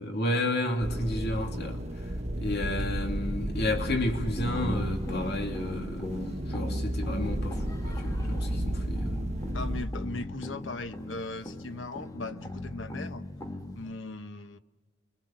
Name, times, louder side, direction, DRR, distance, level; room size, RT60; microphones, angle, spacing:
voice 1, 0.0-2.1 2.4-6.1 6.5-9.2, left 1 dB, 60° left, 2.7 m, -32 dB
sound 1, 0.8-9.9, right 1 dB, 35° right, 1.5 m, -33 dB
sound 2, 4.4-13.9, left 1 dB, 20° left, 1.9 m, -39 dB
voice 2, 9.5-13.2 13.7-14.6, left 3 dB, 75° left, 1.1 m, -38 dB
29.5 x 23.5 x 7.4 m
head